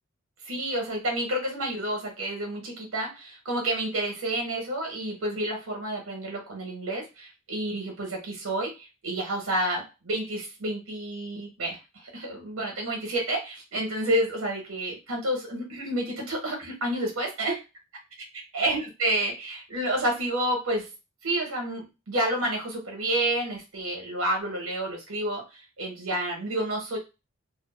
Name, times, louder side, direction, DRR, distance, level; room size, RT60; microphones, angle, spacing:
voice 1, 0.4-11.8 12.1-17.6 18.5-20.9 21.2-27.0, right 1 dB, 90° right, 0 dB, 1.0 m, -29 dB
2.5 x 2.1 x 2.3 m, 0.27 s
head